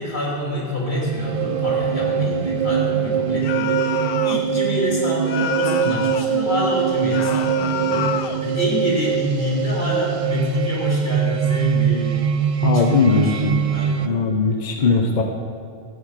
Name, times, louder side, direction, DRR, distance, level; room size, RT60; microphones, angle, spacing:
voice 1, 0.0-12.2 12.7-14.2 14.8-15.1, left 1 dB, 85° left, -4 dB, 3.6 m, -27 dB
sound 1, 0.9-14.1, right 7 dB, 45° right, 0.4 m, -22 dB
sound 2, 3.4-4.5 5.3-6.4 7.1-8.5, left 9 dB, 65° left, 0.7 m, -29 dB
voice 2, 12.6-13.6 14.0-15.2, left 4 dB, 45° left, 3 dB, 1.0 m, -19 dB
13.0 x 8.6 x 6.5 m, 2.3 s
omnidirectional pair, 1.1 m